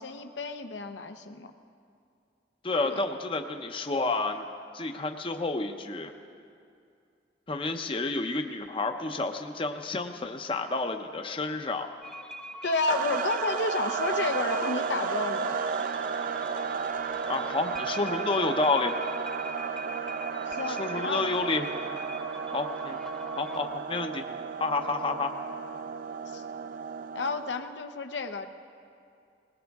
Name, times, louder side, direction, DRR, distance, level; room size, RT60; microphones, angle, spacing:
voice 1, 0.0-1.5 2.8-3.0 12.6-15.7 20.5-21.3 26.3-26.4 27.1-28.5, left 3 dB, 85° left, 7 dB, 0.8 m, -31 dB
voice 2, 2.6-4.5 4.7-6.1 7.5-11.9 17.3-19.0 20.7-22.0 22.5-23.0 23.4-24.2 24.6-25.3, left 3 dB, 30° left, 6 dB, 0.7 m, -30 dB
sound 1, 12.0-23.6, equal, 5° left, 0.9 m, -43 dB
sound 2, 12.9-27.6, right 6 dB, 50° right, 0.4 m, -33 dB
20.0 x 20.0 x 3.6 m, 2.4 s
head